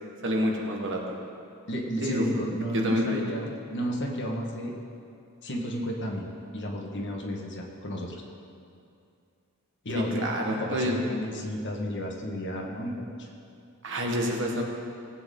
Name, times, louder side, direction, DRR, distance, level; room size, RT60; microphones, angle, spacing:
voice 1, 0.2-1.0 2.0-2.2 2.7-3.2 9.9-11.0 13.8-14.6, equal, 60° right, 0 dB, 1.6 m, -28 dB
voice 2, 1.7-4.7 5.4-8.2 9.8-13.3, equal, 55° left, 0 dB, 1.5 m, -32 dB
18.0 x 8.5 x 3.8 m, 2.5 s
head